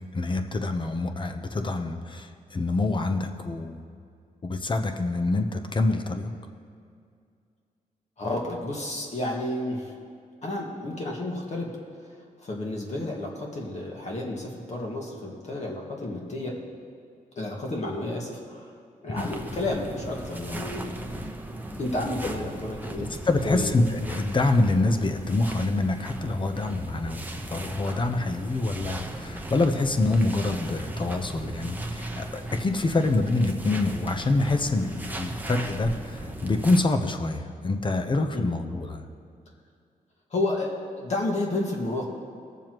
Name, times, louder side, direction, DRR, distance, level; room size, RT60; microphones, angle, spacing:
voice 1, 0.1-3.8 4.4-6.3 19.2-19.3 23.2-27.2 27.5-39.0, left 2 dB, 35° left, 6 dB, 0.9 m, -26 dB
voice 2, 8.2-9.9 10.4-11.7 12.4-16.5 17.3-18.7 19.0-20.9 21.8-23.0 23.4-23.7 38.3-38.5 40.3-42.1, left 2 dB, 50° left, -2 dB, 1.8 m, -31 dB
sound 1, 19.2-36.8, right 1 dB, 10° right, 0.9 m, -37 dB
20.5 x 7.0 x 3.0 m, 2.3 s
cardioid pair, 95°, 15 cm